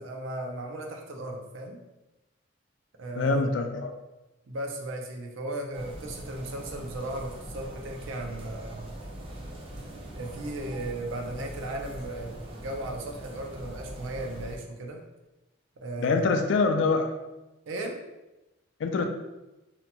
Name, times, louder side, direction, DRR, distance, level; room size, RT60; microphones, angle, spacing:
voice 1, 0.0-1.8 3.0-3.4 4.5-8.8 10.2-15.0 15.8-16.2 17.7-18.0, right 1 dB, 85° right, 3 dB, 0.5 m, -36 dB
voice 2, 3.2-3.9 16.0-17.1 18.8-19.0, left 4 dB, 70° left, 6 dB, 0.3 m, -25 dB
sound 1, 5.7-14.6, right 1 dB, 30° right, 0.4 m, -41 dB
2.8 x 2.2 x 2.7 m, 1.0 s
head